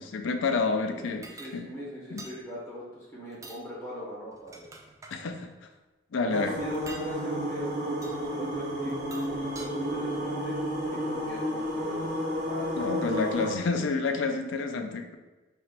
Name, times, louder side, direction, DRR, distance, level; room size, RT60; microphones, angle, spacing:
voice 1, 0.0-1.3 1.5-1.7 2.1-2.2 5.1-5.5 6.1-6.6 12.8-15.2, left 4 dB, 85° left, 7 dB, 0.4 m, -29 dB
voice 2, 0.8-4.6 6.2-10.6 10.9-13.4, equal, 15° left, -8 dB, 1.3 m, -41 dB
sound 1, 1.2-1.5 2.2-2.4 3.3-3.6 4.3-5.2 6.7-7.1 8.0-8.2 8.9-9.7, right 3 dB, 15° right, 0.3 m, -46 dB
sound 2, 6.3-13.5, equal, 60° right, 0.9 m, -31 dB
4.3 x 3.1 x 2.5 m, 1.2 s
head